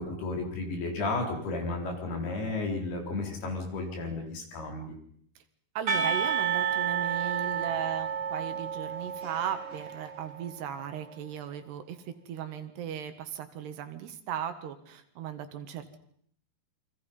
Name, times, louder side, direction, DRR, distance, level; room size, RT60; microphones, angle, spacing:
voice 1, 0.0-5.0, left 3 dB, 65° left, 2 dB, 5.8 m, -33 dB
voice 2, 5.8-12.0 12.3-16.0, right 9 dB, 75° right, 9 dB, 3.6 m, -37 dB
Percussion / Church bell, 5.9-10.9, right 7 dB, 35° right, 3.5 m, -31 dB
28.0 x 24.0 x 5.5 m, 0.65 s
omnidirectional pair, 4.9 m